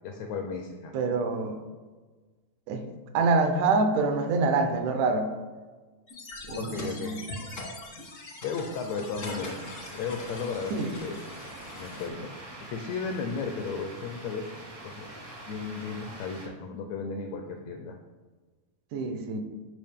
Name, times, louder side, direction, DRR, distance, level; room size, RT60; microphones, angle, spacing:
voice 1, 0.0-0.9 6.5-7.2 8.4-9.7 9.9-11.2 11.8-12.3 12.6-14.5 14.8-15.1 15.5-18.0, left 5 dB, 90° left, 4 dB, 1.5 m, -34 dB
voice 2, 0.9-1.6 2.7-2.9 3.1-5.3 6.5-7.2 10.7-10.9 18.9-19.4, right 3 dB, 75° right, 6 dB, 2.1 m, -26 dB
sound 1, 6.1-12.1, left 2 dB, 70° left, 0.7 m, -42 dB
sound 2, 9.2-16.5, right 1 dB, 35° right, 0.5 m, -44 dB
10.5 x 5.0 x 3.6 m, 1.4 s
omnidirectional pair, 3.8 m